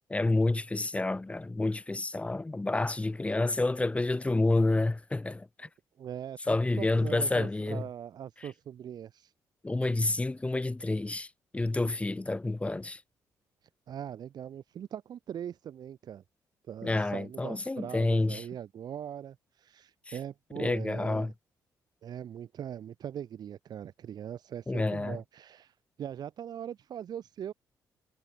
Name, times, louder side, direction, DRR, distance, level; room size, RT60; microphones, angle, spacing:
voice 1, 0.1-5.7 6.5-7.8 9.6-13.0 16.8-18.4 20.1-20.2 20.5-21.3 24.7-25.2, left 2 dB, 15° left, 3.4 m, -29 dB
voice 2, 6.0-9.3 13.9-16.2 16.7-21.3 22.0-27.5, right 9 dB, 65° right, 2.5 m, -41 dB
cardioid pair, 90°, 8 cm